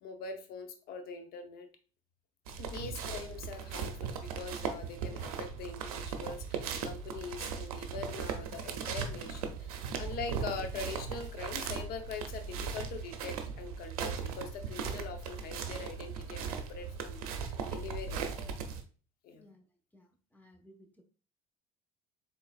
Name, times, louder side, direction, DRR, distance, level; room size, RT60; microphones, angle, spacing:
voice 1, 0.0-1.7 2.6-18.5 19.2-19.5, left 5 dB, 55° left, 6 dB, 0.8 m, -43 dB
sound 1, 2.5-18.8, right 6 dB, 80° right, 0.6 m, -38 dB
voice 2, 19.3-19.7 19.9-21.0, equal, 10° left, 4 dB, 1.1 m, -59 dB
3.9 x 3.6 x 2.4 m, 0.38 s
hypercardioid pair, 65°, 18 cm